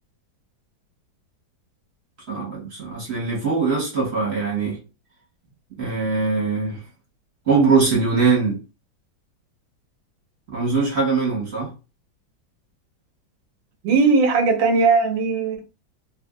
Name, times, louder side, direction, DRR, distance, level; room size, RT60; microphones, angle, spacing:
voice 1, 2.3-4.8 5.8-6.8 7.5-8.6 10.5-11.7, right 4 dB, 40° right, 1.3 m, -21 dB
voice 2, 13.8-15.6, right 4 dB, 75° right, 1.3 m, -18 dB
3.2 x 2.5 x 2.4 m
omnidirectional pair, 2.1 m